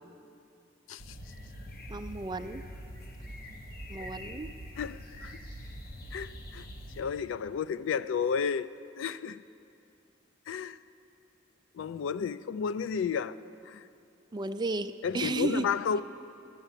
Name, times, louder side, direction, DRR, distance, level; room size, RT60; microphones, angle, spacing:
sound 1, 1.0-7.0, equal, 55° left, 1.1 m, -44 dB
voice 1, 1.9-2.6 3.9-4.5 14.3-15.7, right 3 dB, 25° right, 0.3 m, -33 dB
voice 2, 4.8-5.4 6.1-6.6 7.0-8.7 9.0-9.4 10.5-10.8 11.7-13.4 13.7-13.8 15.0-16.0, left 6 dB, 90° left, 0.3 m, -32 dB
11.5 x 8.9 x 7.3 m
head